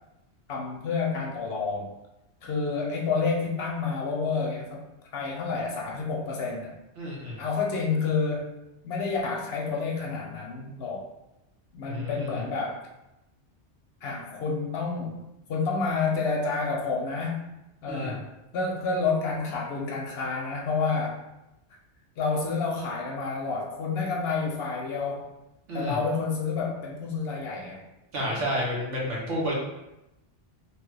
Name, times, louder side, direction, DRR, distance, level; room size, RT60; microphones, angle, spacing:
voice 1, 0.5-1.9 2.4-4.9 5.1-6.8 7.4-8.5 8.8-11.1 11.7-12.8 14.0-15.2 15.5-17.5 17.8-18.3 18.5-21.2 22.2-25.3 25.7-27.8 28.2-28.4, left 4 dB, 65° left, -2 dB, 0.8 m, -29 dB
voice 2, 7.0-7.4 11.9-12.4 17.9-18.2 25.7-26.0 28.1-29.5, equal, 85° right, -3 dB, 1.2 m, -30 dB
3.0 x 2.2 x 3.2 m, 0.92 s
omnidirectional pair, 1.2 m